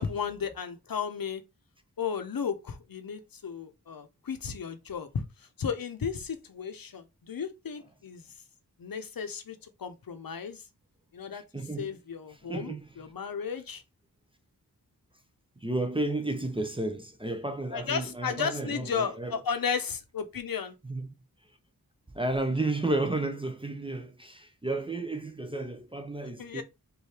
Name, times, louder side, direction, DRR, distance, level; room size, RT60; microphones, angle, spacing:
voice 1, 0.0-1.4 2.0-8.3 8.8-10.6 11.1-11.4 11.8-13.8 17.7-20.7 26.4-26.6, left 6 dB, 65° left, 0.8 m, -34 dB
voice 2, 11.3-11.9 12.5-12.8 15.6-19.4 20.8-21.1 22.1-26.6, right 2 dB, 15° right, 0.6 m, -32 dB
4.6 x 2.6 x 3.3 m
wide cardioid pair, 70°, 37 cm